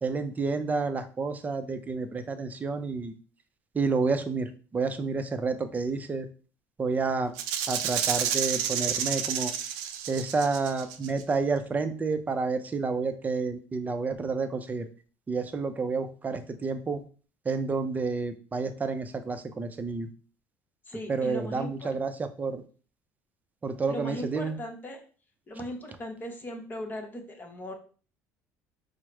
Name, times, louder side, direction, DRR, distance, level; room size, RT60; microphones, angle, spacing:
voice 1, 0.0-3.1 3.7-6.3 6.8-7.4 7.7-9.5 10.1-14.9 15.3-17.0 17.4-20.1 21.1-22.6 23.6-24.6, right 4 dB, 25° right, 9 dB, 0.6 m, -30 dB
Rattle (instrument), 7.4-11.2, right 9 dB, 85° right, 0.5 m, -30 dB
voice 2, 20.9-21.9 23.9-25.0 25.5-27.7, left 1 dB, 30° left, 3 dB, 1.1 m, -38 dB
4.5 x 2.1 x 4.5 m, 0.39 s
supercardioid pair, 95°, 6 cm